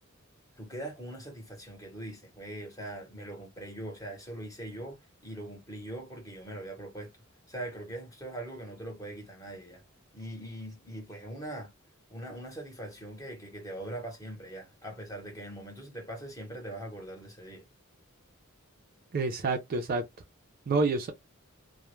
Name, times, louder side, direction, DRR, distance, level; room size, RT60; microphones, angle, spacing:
voice 1, 0.6-7.1 7.5-9.8 10.1-11.7 12.1-17.6, right 1 dB, 15° left, 0.8 m, -41 dB
voice 2, 19.1-20.0 20.7-21.1, right 3 dB, 45° right, 0.4 m, -28 dB
2.2 x 2.0 x 2.9 m
head